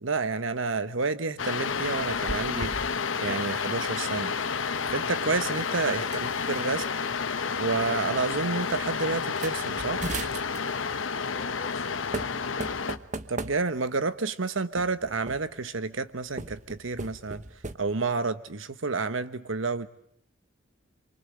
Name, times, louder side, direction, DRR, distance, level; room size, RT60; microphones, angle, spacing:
voice 1, 0.0-2.7 3.2-4.3 4.9-6.8 7.6-10.0 13.3-17.4 17.8-19.9, right 4 dB, 85° right, 12 dB, 1.2 m, -30 dB
sound 1, 1.4-13.0, left 5 dB, 85° left, 1.1 m, -30 dB
sound 2, 1.7-3.0 3.2-3.6 4.7-6.6 7.4-7.5 7.8-8.1 8.6-8.7 9.2-10.8 11.7-11.9 12.1-14.0 14.8-15.7 16.3-17.8, right 2 dB, 40° right, 1.1 m, -39 dB
voice 2, 11.2-12.4, left 2 dB, 30° left, 5 dB, 3.0 m, -47 dB
28.5 x 24.0 x 7.7 m, 0.70 s
head